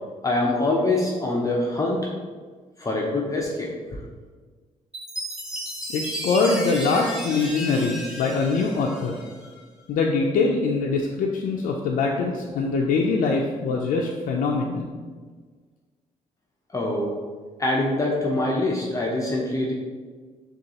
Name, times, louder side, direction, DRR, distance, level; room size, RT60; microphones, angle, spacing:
voice 1, 0.2-2.1 2.8-4.0 16.7-17.1 17.6-19.7, left 2 dB, 25° left, -3 dB, 0.6 m, -24 dB
Chime, 4.9-9.5, equal, 5° right, 0.9 m, -34 dB
voice 2, 5.9-9.2 9.9-14.9, left 4 dB, 80° left, -1 dB, 0.4 m, -23 dB
6.3 x 2.4 x 2.9 m, 1.5 s
cardioid pair, 105°, 13 cm